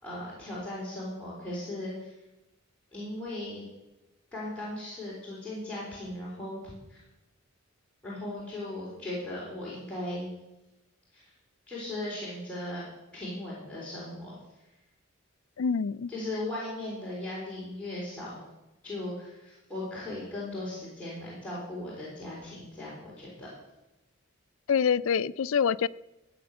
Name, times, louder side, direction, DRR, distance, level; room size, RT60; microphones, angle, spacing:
voice 1, 0.0-2.1 2.9-3.6 4.3-7.0 8.0-10.3 11.1-11.3 11.7-12.8 13.1-14.3 16.1-18.4 18.8-23.5, left 1 dB, 5° left, -8 dB, 4.3 m, -37 dB
voice 2, 15.6-16.1 24.7-25.9, left 6 dB, 75° left, 18 dB, 0.4 m, -26 dB
15.0 x 8.6 x 6.6 m, 0.97 s
head